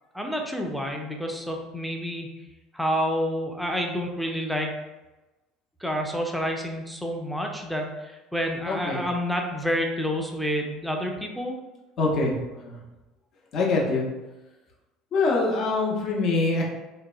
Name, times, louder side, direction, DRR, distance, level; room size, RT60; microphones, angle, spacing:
voice 1, 0.1-2.3 2.7-4.7 5.8-11.5, equal, ahead, 2 dB, 0.5 m, -29 dB
voice 2, 8.7-9.0 12.0-12.8 13.5-14.1 15.1-16.6, left 3 dB, 50° left, -2 dB, 0.6 m, -24 dB
2.8 x 2.1 x 2.3 m, 1.1 s
hypercardioid pair, 70°, 0 cm